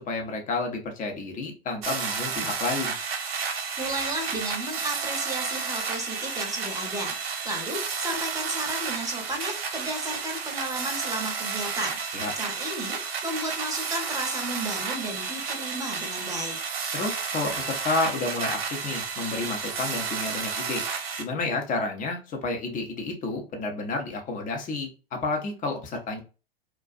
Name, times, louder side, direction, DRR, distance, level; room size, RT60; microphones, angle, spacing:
voice 1, 0.1-3.0 12.1-12.3 16.9-20.8 21.2-26.2, left 3 dB, 25° left, 3 dB, 0.8 m, -30 dB
sound 1, 1.8-21.2, right 5 dB, 85° right, 0.8 m, -31 dB
voice 2, 3.8-16.6, right 1 dB, 10° right, 1 dB, 0.9 m, -33 dB
2.5 x 2.3 x 2.4 m, 0.33 s
hypercardioid pair, 110°, 30 cm